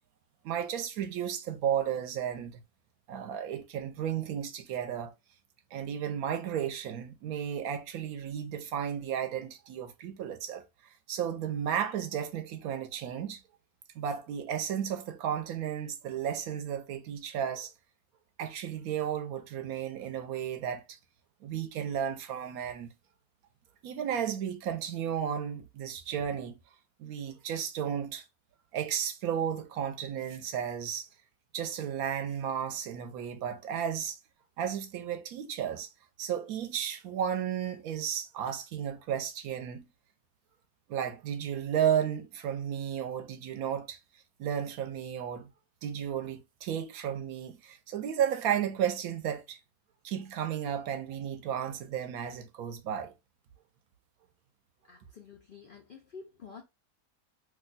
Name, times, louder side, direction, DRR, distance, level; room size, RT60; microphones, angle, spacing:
voice 1, 0.4-2.6 3.1-5.1 5.7-13.4 13.9-17.7 18.4-21.0 21.4-22.9 23.8-26.6 27.0-28.2 28.7-31.1 31.5-34.2 34.6-35.9 36.2-39.9 40.9-44.0 44.4-45.5 45.8-49.6 50.0-53.1, right 9 dB, 75° right, 1.0 m, -33 dB
voice 2, 54.9-56.6, left 5 dB, 85° left, 0.4 m, -49 dB
2.8 x 2.1 x 3.9 m
omnidirectional pair, 1.6 m